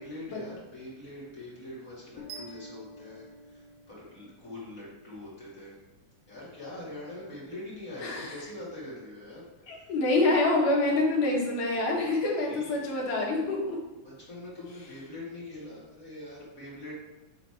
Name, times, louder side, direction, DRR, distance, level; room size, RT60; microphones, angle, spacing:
voice 1, 0.0-5.8 6.3-9.5 9.7-9.9 12.4-12.8 14.0-16.9, left 1 dB, 30° left, -8 dB, 2.2 m, -43 dB
Bass guitar, 2.2-4.6, left 2 dB, 85° left, 2.4 m, -50 dB
sound 1, 2.3-4.4, right 6 dB, 90° right, 2.6 m, -48 dB
voice 2, 8.0-8.3 9.7-13.8, left 2 dB, 65° left, -3 dB, 2.8 m, -26 dB
9.3 x 3.9 x 4.6 m, 1.1 s
omnidirectional pair, 3.9 m